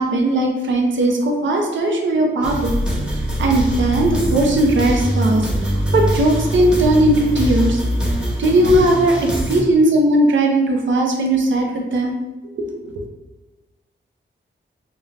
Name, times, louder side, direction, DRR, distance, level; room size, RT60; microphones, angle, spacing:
voice 1, 0.0-2.8 3.1-7.8 8.4-12.1 12.6-12.7, right 1 dB, 80° right, 1 dB, 0.6 m, -18 dB
sound 1, 2.4-9.6, right 1 dB, 5° right, 0.7 m, -22 dB
2.5 x 2.2 x 3.2 m, 1.1 s
wide cardioid pair, 115°, 19 cm